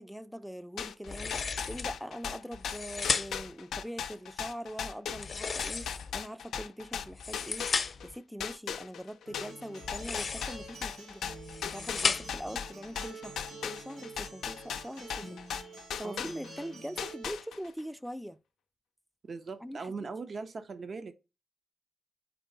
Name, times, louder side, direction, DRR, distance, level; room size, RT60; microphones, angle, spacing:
voice 1, 0.0-7.7 8.0-11.2 11.6-15.4 16.0-18.4 19.6-19.9, equal, ahead, 0.4 m, -42 dB
sound 1, 0.8-8.1 8.4-16.7 17.0-17.8, left 8 dB, 90° left, 0.4 m, -38 dB
sound 2, 1.1-1.9 2.5-3.5 5.1-6.2 7.0-8.1 9.8-10.7 11.3-12.5, left 5 dB, 55° left, 0.7 m, -34 dB
Acoustic guitar, 9.3-17.2, right 2 dB, 80° right, 2.8 m, -48 dB
voice 2, 19.2-21.1, right 4 dB, 55° right, 0.6 m, -40 dB
4.6 x 3.1 x 3.8 m
cardioid pair, 65°, 0 cm